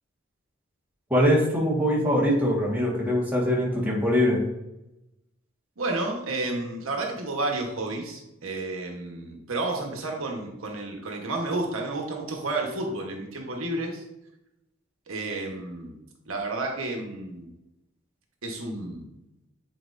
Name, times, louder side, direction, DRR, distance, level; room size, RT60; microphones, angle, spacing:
voice 1, 1.1-4.4, equal, 10° right, -4 dB, 1.6 m, -22 dB
voice 2, 5.8-14.0 15.1-15.9 16.3-17.5 18.4-19.1, right 2 dB, 85° right, 1 dB, 1.2 m, -31 dB
8.3 x 4.6 x 2.6 m, 0.90 s
head